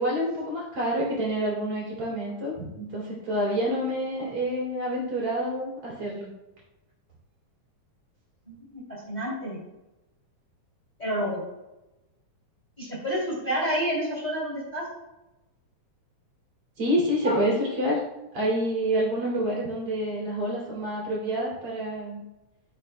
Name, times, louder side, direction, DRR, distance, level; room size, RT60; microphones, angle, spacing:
voice 1, 0.0-6.3 16.8-18.0 18.3-22.2, equal, 50° right, -5 dB, 3.2 m, -28 dB
voice 2, 9.1-9.6 11.0-11.4 12.8-14.8 17.2-17.4, equal, 15° left, -5 dB, 2.7 m, -29 dB
14.5 x 6.2 x 2.2 m, 0.98 s
omnidirectional pair, 3.6 m